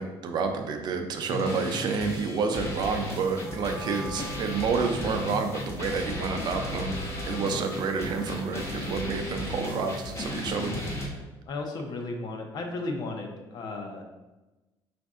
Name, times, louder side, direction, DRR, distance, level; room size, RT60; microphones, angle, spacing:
voice 1, 0.0-7.0 7.3-10.8, right 5 dB, 55° right, 5 dB, 0.5 m, -29 dB
sound 1, 1.3-11.1, left 1 dB, 30° left, 0.9 m, -35 dB
Wind instrument woodwind instrument, 3.4-9.4, left 1 dB, 5° right, 0.6 m, -43 dB
voice 2, 11.5-14.0, left 2 dB, 50° left, 3 dB, 0.7 m, -35 dB
5.1 x 2.6 x 3.5 m, 1.1 s
cardioid pair, 140°, 9 cm